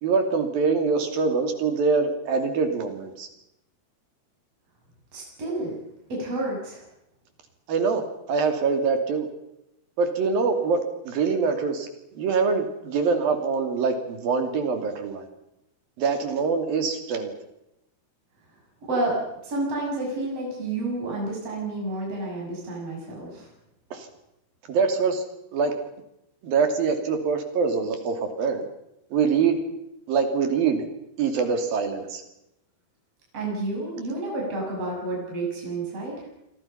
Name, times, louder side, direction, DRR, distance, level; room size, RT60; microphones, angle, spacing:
voice 1, 0.0-3.3 7.7-9.3 10.0-11.9 12.1-15.3 16.0-17.3 23.9-24.1 24.7-25.2 25.5-25.7 26.4-28.7 29.1-29.6 30.1-30.9 31.2-32.2, right 5 dB, 60° right, 6 dB, 4.4 m, -24 dB
voice 2, 5.1-5.8 6.1-6.8 18.9-23.5 33.3-36.2, right 2 dB, 35° right, -2 dB, 7.8 m, -30 dB
29.0 x 24.0 x 5.9 m, 0.85 s
omnidirectional pair, 4.8 m